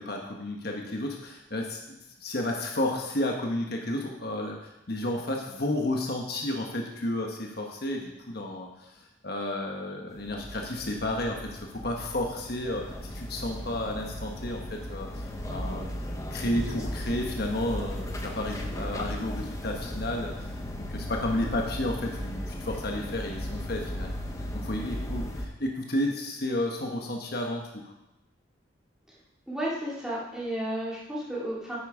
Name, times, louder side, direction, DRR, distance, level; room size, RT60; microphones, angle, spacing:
voice 1, 0.0-15.9 16.3-24.2 24.5-27.9, left 1 dB, 55° left, 1 dB, 1.2 m, -32 dB
sound 1, 10.1-25.5, left 1 dB, 15° left, 1.0 m, -36 dB
voice 2, 29.5-31.8, right 1 dB, 5° right, -7 dB, 2.7 m, -32 dB
9.3 x 8.7 x 5.0 m, 0.92 s
head